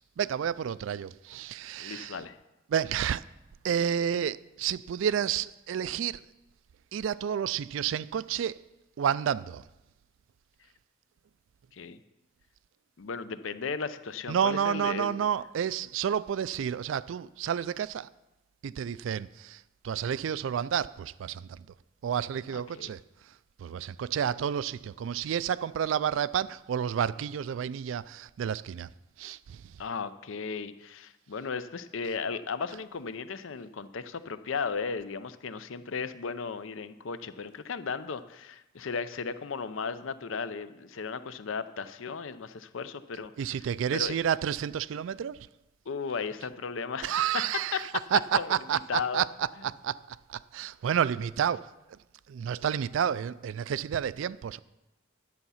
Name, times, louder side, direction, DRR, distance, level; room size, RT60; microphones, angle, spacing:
voice 1, 0.0-2.2 2.7-3.2 3.6-6.2 6.9-8.6 9.0-9.6 14.3-18.1 18.6-21.7 22.0-23.0 23.6-28.9 29.2-29.8 43.4-45.5 47.0-52.0 52.3-54.6, right 8 dB, 70° right, 0.3 m, -30 dB
voice 2, 1.8-2.4 11.7-12.0 13.0-15.2 22.5-22.9 29.8-43.6 43.9-44.2 45.9-47.2 47.7-47.8 48.3-48.6 48.9-49.2, left 5 dB, 75° left, 0.6 m, -35 dB
10.5 x 8.1 x 5.6 m
head